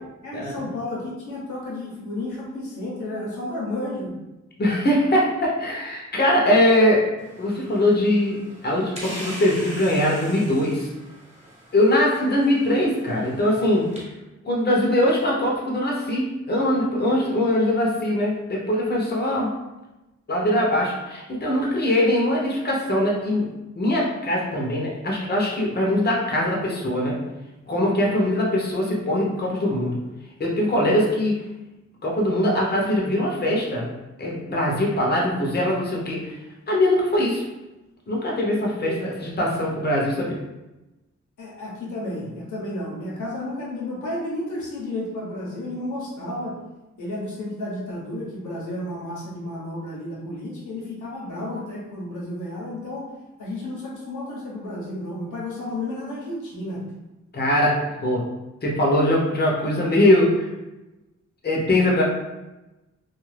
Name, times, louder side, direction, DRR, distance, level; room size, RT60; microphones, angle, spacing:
voice 1, 0.2-4.1 38.8-39.0 41.4-46.6 47.0-53.1 53.4-56.9, left 1 dB, 90° left, -5 dB, 0.9 m, -32 dB
voice 2, 4.6-7.0 7.4-10.9 11.7-13.9 14.4-19.5 20.3-23.5 23.8-27.2 27.7-30.0 30.4-31.4 32.0-33.9 34.2-36.3 36.7-37.4 38.1-40.4 57.3-58.3 58.6-60.5 61.4-62.0, left 1 dB, 35° left, -3 dB, 0.7 m, -22 dB
sound 1, 7.2-14.0, equal, 25° right, 1.2 m, -41 dB
2.4 x 2.4 x 3.2 m, 1.0 s
cardioid pair, 85°, 29 cm